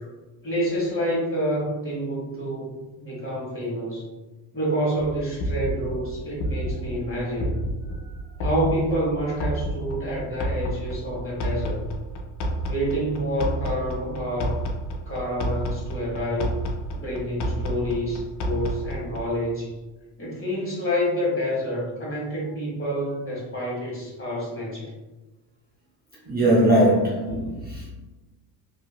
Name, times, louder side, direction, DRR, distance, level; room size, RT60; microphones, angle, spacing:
voice 1, 0.4-4.1 4.5-7.6 8.4-11.8 12.6-14.7 15.1-16.5 17.0-19.7 20.2-24.9, equal, 25° left, -5 dB, 1.3 m, -28 dB
sound 1, 5.0-19.4, right 1 dB, 55° left, 0.6 m, -31 dB
voice 2, 26.3-27.9, right 1 dB, 20° right, -6 dB, 0.5 m, -20 dB
2.7 x 2.6 x 2.2 m, 1.2 s
supercardioid pair, 70°, 50 cm